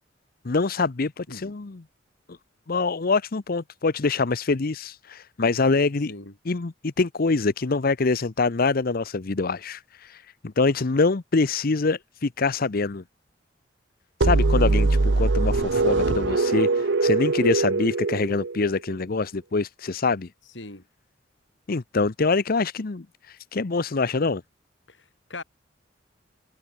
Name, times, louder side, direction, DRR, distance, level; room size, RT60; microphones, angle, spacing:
voice 1, 0.4-1.8 2.3-2.4 2.7-6.1 6.5-13.0 14.2-20.3 21.7-24.4, left 3 dB, 50° left, 0.7 m, -25 dB
sound 1, 14.2-18.9, right 3 dB, 75° right, 0.9 m, -22 dB
voice 2, 24.9-25.4, left 2 dB, 70° left, 5.8 m, -40 dB
head